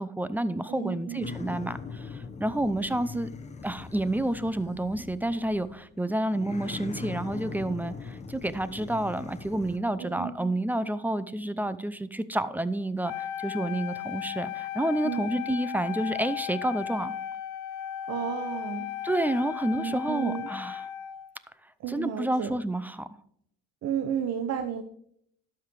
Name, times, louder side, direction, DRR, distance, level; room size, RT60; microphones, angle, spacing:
voice 1, 0.0-3.3 3.6-17.1 19.0-20.8 21.9-23.1, right 1 dB, 5° right, 15 dB, 0.5 m, -29 dB
voice 2, 0.7-1.4 10.0-10.3 15.0-15.3 18.1-18.9 19.8-20.5 21.8-22.6 23.8-24.8, right 8 dB, 60° right, 8 dB, 0.9 m, -32 dB
sound 1, 1.2-5.9 6.3-9.8, left 5 dB, 25° left, 1.1 m, -41 dB
Wind instrument woodwind instrument, 13.0-21.3, left 11 dB, 75° left, 0.8 m, -36 dB
12.0 x 5.8 x 4.7 m, 0.68 s
cardioid pair, 100°, 30 cm